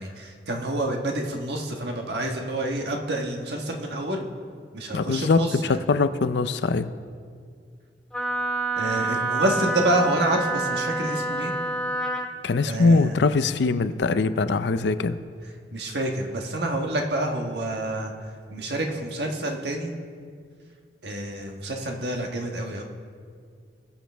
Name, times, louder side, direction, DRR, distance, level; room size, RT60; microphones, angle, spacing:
voice 1, 0.0-4.3 4.7-5.8 8.7-11.5 12.6-13.1 15.7-18.1 18.5-19.9 21.0-22.8, right 1 dB, 70° right, 2 dB, 1.3 m, -28 dB
voice 2, 4.9-5.4 5.7-6.9 12.4-15.2, left 3 dB, 75° left, 12 dB, 0.5 m, -22 dB
Wind instrument woodwind instrument, 8.1-12.3, right 2 dB, 5° left, 0.7 m, -27 dB
20.5 x 7.3 x 3.4 m, 2.1 s
head